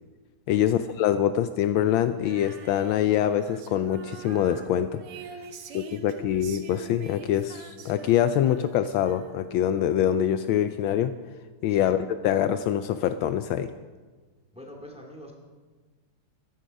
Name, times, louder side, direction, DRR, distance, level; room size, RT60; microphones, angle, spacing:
voice 1, 0.5-5.0 5.7-11.1 11.6-13.7, left 10 dB, 75° left, 11 dB, 1.3 m, -24 dB
Female singing, 2.2-9.7, right 7 dB, 90° right, 1.9 m, -45 dB
voice 2, 5.4-6.1 11.7-11.9 14.5-15.3, equal, 5° right, 1 dB, 2.0 m, -47 dB
14.5 x 11.5 x 5.3 m, 1.4 s
omnidirectional pair, 2.3 m